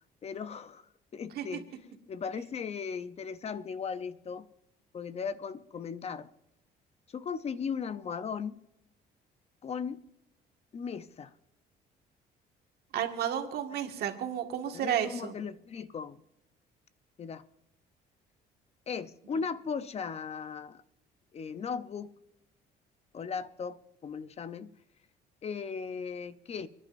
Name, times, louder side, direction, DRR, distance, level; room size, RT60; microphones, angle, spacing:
voice 1, 0.2-0.8 1.1-1.7 2.1-4.5 4.9-6.3 7.1-8.6 9.6-10.0 10.7-11.3 13.7-13.8 14.7-16.2 17.2-17.4 18.9-20.8 21.3-22.1 23.1-24.7 25.4-26.7, left 6 dB, 40° left, 0.7 m, -37 dB
voice 2, 12.9-15.4, right 10 dB, 70° right, 1.8 m, -32 dB
29.5 x 11.0 x 2.6 m
cardioid pair, 110°, 17 cm